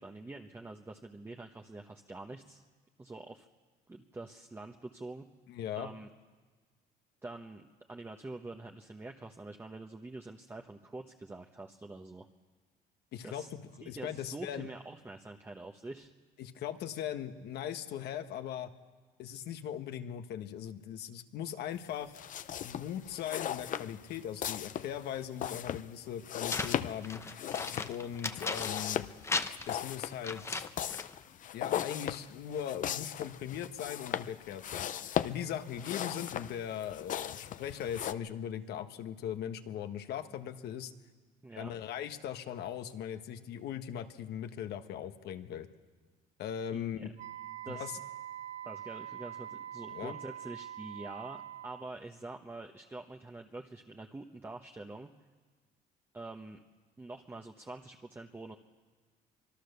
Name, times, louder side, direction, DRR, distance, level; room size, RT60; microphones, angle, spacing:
voice 1, 0.0-2.6 3.0-3.5 3.9-5.3 5.7-6.1 7.2-12.3 13.2-13.5 13.8-16.1 41.4-41.7 46.7-47.1 47.6-48.0 48.6-55.1 56.1-56.6 57.0-58.6, right 2 dB, 15° right, 2 dB, 1.1 m, -46 dB
voice 2, 5.5-5.9 13.1-14.7 16.4-18.7 19.2-22.1 22.6-27.2 27.9-29.1 29.7-30.6 31.5-34.9 35.2-40.9 41.5-45.7 46.4-47.1 47.7-47.9 49.9-50.1, left 9 dB, 75° left, 8 dB, 1.4 m, -39 dB
sound 1, 22.1-38.1, left 10 dB, 50° left, 0.7 m, -38 dB
sound 2, 26.5-29.0 29.2-31.2, left 3 dB, 15° left, 0.9 m, -37 dB
Wind instrument woodwind instrument, 47.2-52.0, right 11 dB, 45° right, 1.2 m, -44 dB
25.0 x 22.0 x 6.8 m, 1.4 s
cardioid pair, 110°, 17 cm